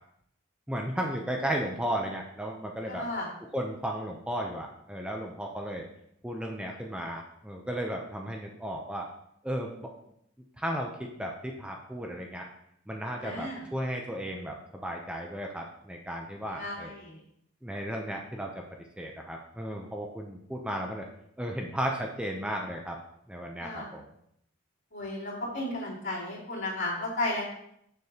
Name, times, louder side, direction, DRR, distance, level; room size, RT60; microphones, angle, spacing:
voice 1, 0.7-3.1 3.4-5.8 6.2-9.1 9.4-9.9 10.6-12.5 12.9-16.9 17.6-18.6 19.0-21.1 21.4-23.0 23.3-24.0, equal, 5° right, 1 dB, 0.5 m, -34 dB
voice 2, 2.9-3.3 13.2-13.6 16.5-17.2 23.6-23.9 24.9-27.4, left 2 dB, 60° left, -7 dB, 2.7 m, -34 dB
6.7 x 6.5 x 2.8 m, 0.73 s
head